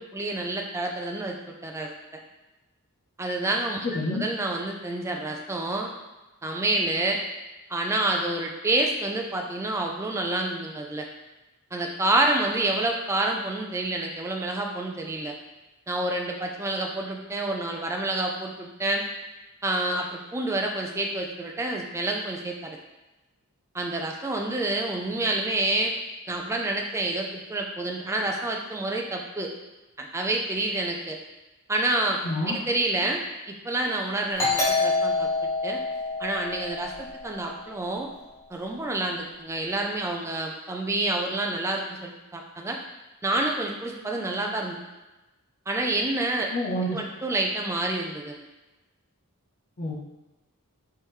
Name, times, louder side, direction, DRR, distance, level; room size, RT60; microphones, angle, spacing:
voice 1, 0.0-1.4 1.6-2.2 3.2-5.9 6.4-7.2 7.7-11.1 11.7-15.3 15.9-19.0 19.6-22.8 23.7-25.9 26.3-29.5 30.0-31.2 31.7-32.2 32.5-35.8 36.2-38.1 38.5-42.8 43.2-44.8 45.7-46.5 46.9-48.4, right 2 dB, 15° right, 1 dB, 0.4 m, -28 dB
voice 2, 3.8-4.2 32.2-32.6 46.5-47.0 49.8-49.9, left 1 dB, 40° left, -2 dB, 0.7 m, -28 dB
Doorbell, 34.4-37.7, left 3 dB, 15° left, 1.2 m, -27 dB
4.5 x 3.5 x 3.2 m, 1.0 s
head